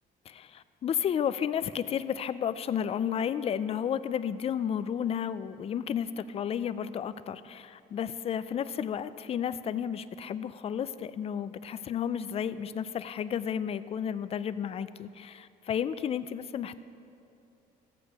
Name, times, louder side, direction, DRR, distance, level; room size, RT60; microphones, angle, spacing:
voice 1, 0.3-16.8, left 8 dB, 35° left, 14 dB, 0.3 m, -32 dB
15.0 x 8.2 x 2.9 m, 2.6 s
cardioid pair, 110°, 17 cm